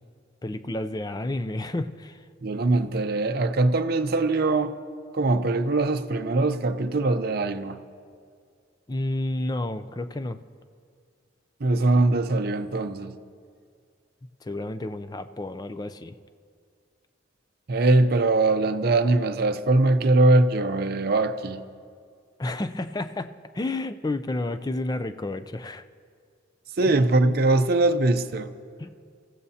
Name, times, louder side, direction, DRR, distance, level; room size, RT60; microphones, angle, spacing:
voice 1, 0.4-2.2 8.9-10.4 14.4-16.2 22.4-23.3 23.5-25.8 28.8-28.9, left 2 dB, 20° left, 0.4 m, -30 dB
voice 2, 2.4-4.7 5.1-7.8 11.6-13.2 17.7-21.6 26.8-28.5, right 2 dB, 50° right, 0.6 m, -22 dB
25.5 x 15.0 x 2.8 m
head